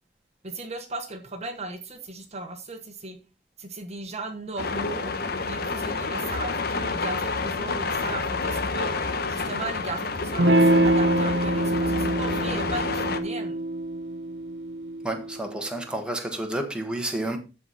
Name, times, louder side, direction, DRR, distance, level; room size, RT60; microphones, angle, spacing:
voice 1, 0.4-3.2 3.6-5.1 5.4-8.9 9.3-13.6, right 2 dB, 40° right, 1.1 m, -36 dB
sound 1, 4.6-13.2, left 3 dB, 60° left, 1.0 m, -29 dB
Electric guitar / Strum, 10.4-15.5, right 1 dB, 85° right, 0.9 m, -24 dB
voice 2, 15.0-17.4, right 1 dB, 5° right, 1.5 m, -30 dB
13.5 x 4.9 x 4.1 m
head